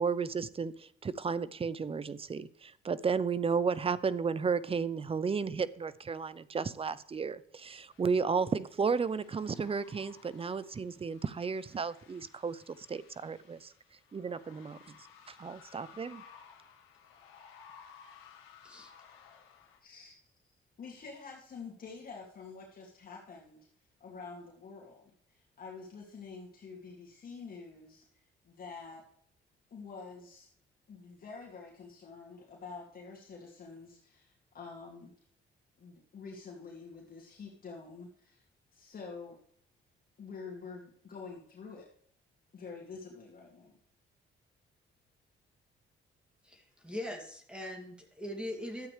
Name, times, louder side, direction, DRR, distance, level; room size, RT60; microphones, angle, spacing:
voice 1, 0.0-13.7 14.1-14.8 15.3-16.2, right 5 dB, 30° right, 0.6 m, -33 dB
sound 1, 7.9-19.8, left 7 dB, 85° left, 2.0 m, -58 dB
voice 2, 18.6-18.9 46.4-48.9, left 1 dB, 5° right, 2.6 m, -41 dB
voice 3, 19.8-20.2 20.8-23.7 24.0-29.0 29.7-30.5 30.9-35.1 35.8-38.4 38.7-39.4 40.2-41.9 42.5-43.7, left 4 dB, 50° left, 2.5 m, -47 dB
12.5 x 8.6 x 3.3 m
cardioid pair, 90°, 20 cm